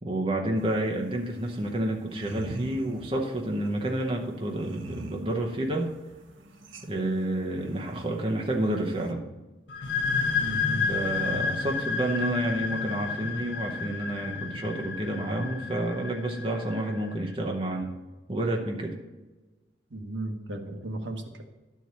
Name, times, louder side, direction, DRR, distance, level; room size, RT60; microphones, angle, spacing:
voice 1, 0.0-5.9 6.9-9.2 10.9-17.9 18.3-19.0, right 1 dB, 30° right, 1 dB, 0.8 m, -29 dB
sound 1, 0.5-9.1, right 2 dB, 90° right, 0.9 m, -45 dB
sound 2, 9.7-17.1, left 5 dB, 65° left, 0.8 m, -31 dB
voice 2, 10.4-10.9 19.9-21.4, right 1 dB, 70° right, 4 dB, 1.2 m, -35 dB
11.5 x 4.6 x 6.9 m, 1.2 s
head